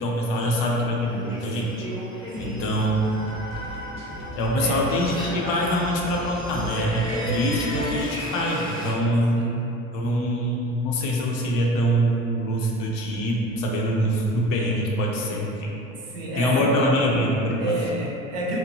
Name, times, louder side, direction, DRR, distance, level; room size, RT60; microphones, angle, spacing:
voice 1, 0.0-1.9 2.4-3.3 4.3-9.4 9.9-15.7 16.3-17.8, equal, 55° left, -2 dB, 0.6 m, -24 dB
sound 1, 1.0-8.9, equal, 10° left, 0.8 m, -35 dB
voice 2, 2.3-2.7 4.6-4.8 9.3-9.6 15.8-16.9 17.6-18.6, right 1 dB, 65° right, -3 dB, 0.7 m, -30 dB
sound 2, 2.4-7.9, equal, 20° right, 0.3 m, -38 dB
2.9 x 2.1 x 2.5 m, 2.8 s
hypercardioid pair, 80°, 40 cm